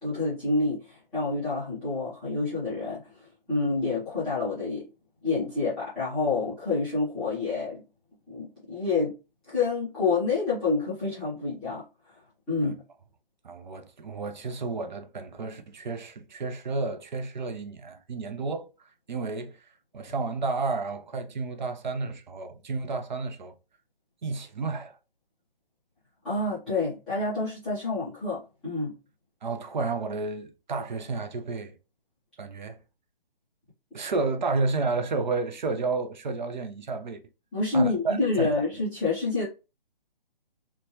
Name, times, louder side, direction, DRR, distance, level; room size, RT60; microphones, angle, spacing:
voice 1, 0.0-4.8 5.2-7.8 8.3-9.1 9.5-11.8 12.5-12.8 26.2-28.9 37.5-39.4, left 3 dB, ahead, 0.4 m, -28 dB
voice 2, 13.4-18.7 19.1-19.7 19.9-23.5 24.2-25.0 29.4-31.8 32.4-32.8 33.9-37.2 37.7-38.5, right 3 dB, 50° right, 0.5 m, -31 dB
3.0 x 2.2 x 2.9 m
figure-of-eight pair, 140°, 29 cm